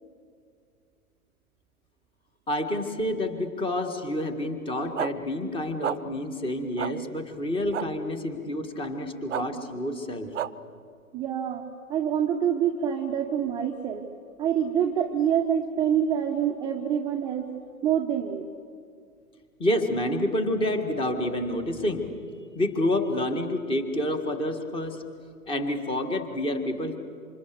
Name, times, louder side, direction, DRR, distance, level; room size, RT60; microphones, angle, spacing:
voice 1, 2.5-10.3 19.6-22.1 22.6-25.0 25.5-27.0, left 1 dB, 10° left, 7 dB, 1.9 m, -28 dB
sound 1, 5.0-5.1 5.8-6.0 6.8-6.9 7.7-7.9 9.3-9.4 10.3-10.5, right 11 dB, 55° right, 0.8 m, -29 dB
voice 2, 11.1-11.6 11.9-14.0 14.4-17.5 17.8-18.5, right 9 dB, 10° right, 2 dB, 1.0 m, -26 dB
28.0 x 26.0 x 6.9 m, 2.2 s
figure-of-eight pair, 125°, 44 cm